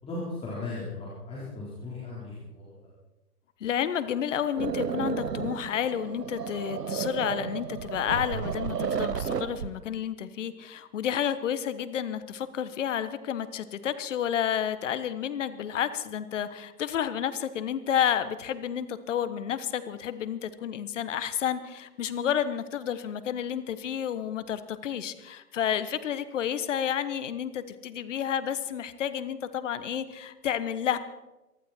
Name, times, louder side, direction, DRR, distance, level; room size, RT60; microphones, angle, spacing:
voice 1, 0.0-2.8, left 2 dB, 10° left, -7 dB, 4.1 m, -37 dB
voice 2, 3.6-31.0, left 9 dB, 50° left, 13 dB, 1.3 m, -30 dB
sound 1, 4.6-9.7, right 7 dB, 85° right, 0.9 m, -32 dB
23.5 x 12.5 x 4.5 m, 1.1 s
figure-of-eight pair, 130°, 47 cm